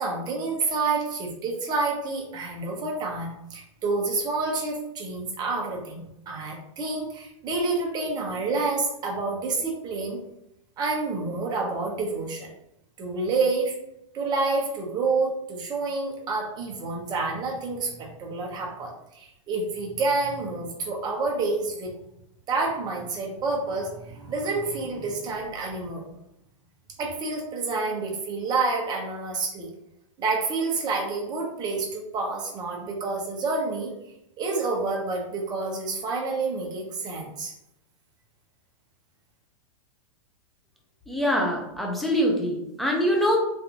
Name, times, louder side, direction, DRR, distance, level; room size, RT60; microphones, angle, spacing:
voice 1, 0.0-10.2 10.8-12.5 13.0-13.7 14.1-21.9 22.5-26.0 27.0-29.7 30.2-33.9 34.4-37.5, right 3 dB, 25° right, 0 dB, 0.8 m, -28 dB
voice 2, 41.1-43.4, equal, ahead, -1 dB, 0.5 m, -24 dB
3.3 x 2.6 x 2.8 m, 0.83 s
hypercardioid pair, 140°, 18 cm